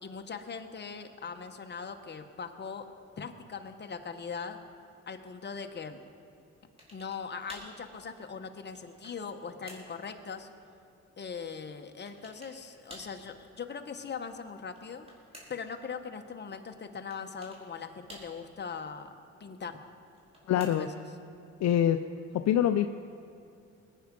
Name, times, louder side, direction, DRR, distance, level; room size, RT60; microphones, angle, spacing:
voice 1, 0.0-2.9 3.2-4.6 5.1-6.0 6.9-10.5 11.2-15.1 15.5-19.1 19.4-19.8 20.4-20.9, left 5 dB, 35° left, 6 dB, 1.2 m, -40 dB
sound 1, 6.8-7.2 7.5-7.8 8.4-9.2 9.7-10.0 12.1-12.6 12.9-13.2 14.6-15.7 17.1-17.6 18.1-18.6 20.1-21.0, equal, 20° right, 4.1 m, -51 dB
voice 2, 20.5-20.9 21.6-22.0 22.3-22.9, left 10 dB, 60° left, 8 dB, 0.6 m, -25 dB
20.5 x 9.5 x 5.4 m, 2.4 s
cardioid pair, 90°, 30 cm